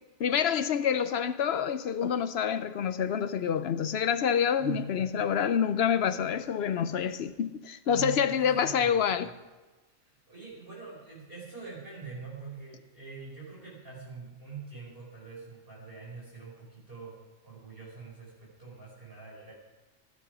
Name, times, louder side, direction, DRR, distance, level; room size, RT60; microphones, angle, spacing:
voice 1, 0.2-9.3, left 8 dB, 60° left, 0.8 m, -27 dB
voice 2, 4.6-5.3 7.8-9.3 10.0-17.2 17.4-19.5, right 5 dB, 45° right, 6.0 m, -44 dB
15.5 x 12.0 x 4.9 m
omnidirectional pair, 1.4 m